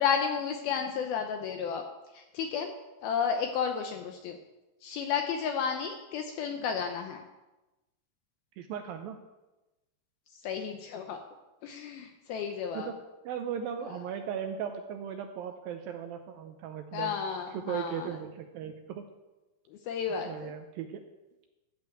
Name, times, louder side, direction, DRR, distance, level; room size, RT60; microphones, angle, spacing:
voice 1, 0.0-1.8 2.1-2.7 3.0-4.4 4.8-7.3 10.4-11.2 11.6-12.9 13.9-14.0 16.9-18.1 19.7-20.5, left 7 dB, 75° left, 5 dB, 2.3 m, -32 dB
voice 2, 8.6-9.2 12.7-13.0 13.3-17.2 17.5-19.1 20.2-21.0, right 8 dB, 85° right, 6 dB, 2.1 m, -37 dB
13.0 x 5.4 x 8.0 m, 1.1 s
omnidirectional pair, 4.9 m